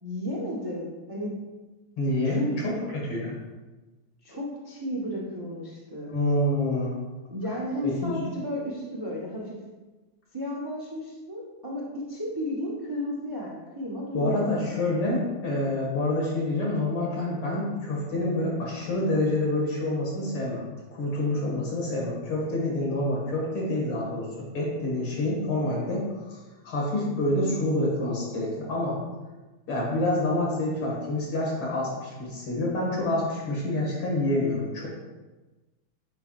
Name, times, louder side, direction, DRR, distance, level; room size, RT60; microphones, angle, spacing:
voice 1, 0.0-1.3 2.2-2.6 4.2-6.1 7.3-9.6 10.3-14.9, equal, 35° right, -3 dB, 0.3 m, -33 dB
voice 2, 2.0-3.3 6.1-6.9 7.8-8.1 14.1-20.6 20.9-26.0 26.6-29.0 29.7-34.9, left 1 dB, 75° left, -4 dB, 2.7 m, -27 dB
9.6 x 4.7 x 2.4 m, 1.2 s
omnidirectional pair, 2.3 m